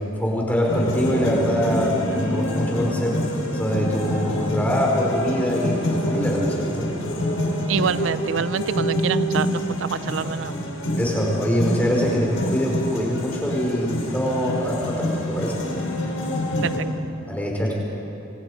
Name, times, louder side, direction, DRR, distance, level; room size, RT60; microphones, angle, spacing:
voice 1, 0.2-3.2 3.5-6.9 11.0-15.6 17.3-17.7, equal, 10° left, -3 dB, 4.7 m, -24 dB
sound 1, 0.7-16.8, left 1 dB, 80° left, 4.9 m, -26 dB
voice 2, 7.7-10.6 16.6-16.8, right 6 dB, 65° right, 15 dB, 0.4 m, -26 dB
27.5 x 26.0 x 5.0 m, 2.8 s
head